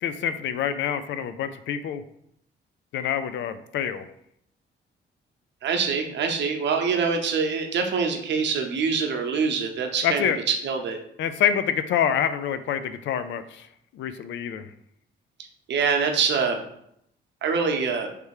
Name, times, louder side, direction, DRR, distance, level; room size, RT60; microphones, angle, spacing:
voice 1, 0.0-2.0 2.9-4.1 10.0-10.4 11.2-13.7 13.9-14.7, left 8 dB, 70° left, 11 dB, 0.4 m, -26 dB
voice 2, 5.6-10.3 10.6-11.0 15.7-16.6 17.4-18.1, right 5 dB, 65° right, 4 dB, 0.8 m, -25 dB
3.3 x 3.3 x 4.7 m, 0.74 s
cardioid pair, 90°, 20 cm